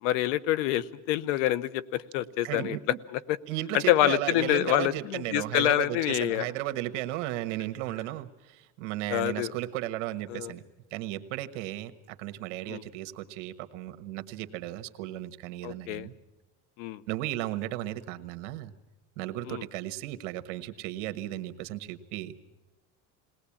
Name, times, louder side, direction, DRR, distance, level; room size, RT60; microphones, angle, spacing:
voice 1, 0.0-2.8 3.1-3.4 3.9-6.5 9.1-9.5 10.3-10.5 12.7-12.8 15.6-16.1 16.8-17.0 19.5-19.6, left 14 dB, 85° left, 19 dB, 0.9 m, -27 dB
voice 2, 2.4-2.8 3.5-10.6 10.9-16.1 17.1-18.7 19.2-22.3, right 15 dB, 80° right, 9 dB, 1.4 m, -35 dB
21.0 x 18.5 x 8.6 m, 1.1 s
cardioid pair, 140°, 36 cm